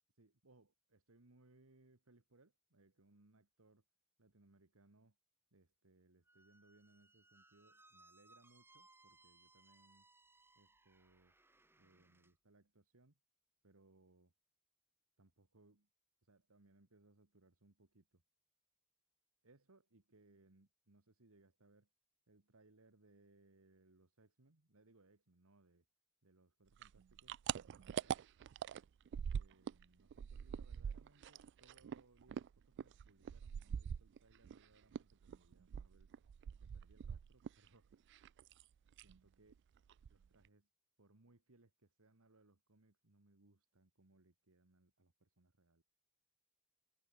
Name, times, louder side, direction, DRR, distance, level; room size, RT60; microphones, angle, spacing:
voice 1, 0.2-3.8 4.2-5.2 5.5-10.1 10.6-11.3 11.8-13.2 13.6-14.3 15.2-15.9 16.2-18.2 19.4-21.9 22.3-25.9 26.2-28.2 29.3-32.5 32.8-36.1 36.6-37.9 39.0-39.6 40.1-40.7 41.0-45.8, right 2 dB, 70° right, 1.8 m, -69 dB
Squeak, 6.2-12.3, right 2 dB, 10° right, 1.1 m, -68 dB
sound 1, 26.8-29.8 30.1-34.6 34.9-37.7 37.9-38.6 38.9-39.2 39.5-39.6 39.9-40.5, right 8 dB, 55° right, 0.3 m, -44 dB
head